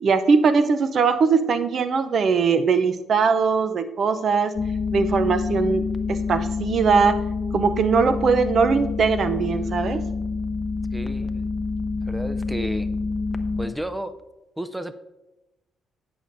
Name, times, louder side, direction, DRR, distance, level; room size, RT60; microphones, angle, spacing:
voice 1, 0.0-4.5 4.9-7.2 7.5-10.0, right 5 dB, 55° right, 11 dB, 0.6 m, -20 dB
sound 1, 4.6-13.7, left 4 dB, 30° left, 0.7 m, -27 dB
voice 2, 10.9-11.5 12.0-12.9 13.6-14.1 14.6-14.9, right 1 dB, 5° right, 11 dB, 0.5 m, -32 dB
16.5 x 6.9 x 2.6 m, 1.0 s
cardioid pair, 90°, 0 cm